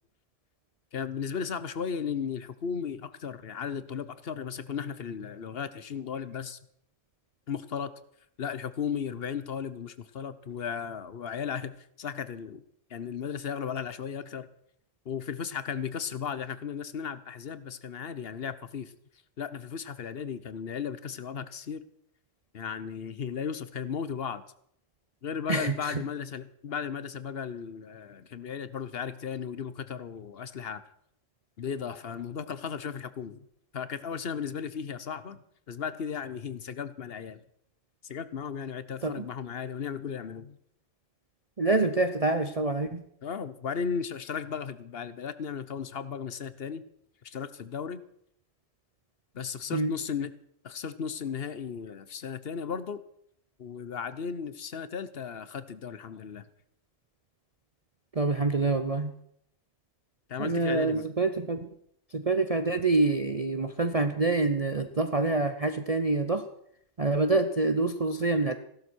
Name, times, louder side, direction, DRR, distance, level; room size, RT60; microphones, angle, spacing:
voice 1, 0.9-6.6 7.5-7.9 8.4-12.6 12.9-14.5 15.0-18.9 19.4-21.8 22.5-24.4 25.2-30.8 31.6-33.5 33.7-37.4 38.0-40.6 43.2-46.8 47.2-48.0 49.3-50.3 50.6-53.0 53.6-56.4 60.3-61.1, left 7 dB, 50° left, 14 dB, 1.1 m, -35 dB
voice 2, 25.5-26.0 39.0-39.2 41.6-43.0 49.7-49.9 58.2-59.1 60.4-61.7 62.1-66.4 67.0-68.6, right 3 dB, 35° right, 8 dB, 0.8 m, -26 dB
16.5 x 12.0 x 6.2 m, 0.70 s
omnidirectional pair, 1.3 m